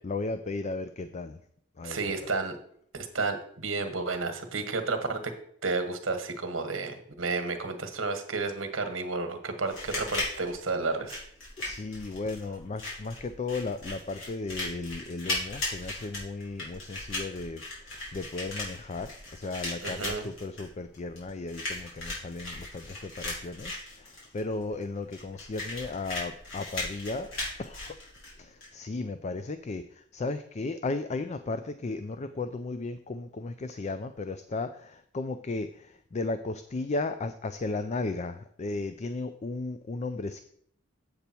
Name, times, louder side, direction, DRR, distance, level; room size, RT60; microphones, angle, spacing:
voice 1, 0.0-1.4 1.8-2.0 11.6-27.3 27.6-28.0 28.4-40.4, left 3 dB, 35° left, 10 dB, 0.4 m, -35 dB
voice 2, 1.8-2.6 2.9-5.2 5.6-11.2 19.8-20.3, right 3 dB, 75° right, 7 dB, 1.3 m, -31 dB
sound 1, 9.7-28.7, left 2 dB, 75° left, 4.2 m, -37 dB
8.1 x 6.9 x 4.4 m, 0.65 s
head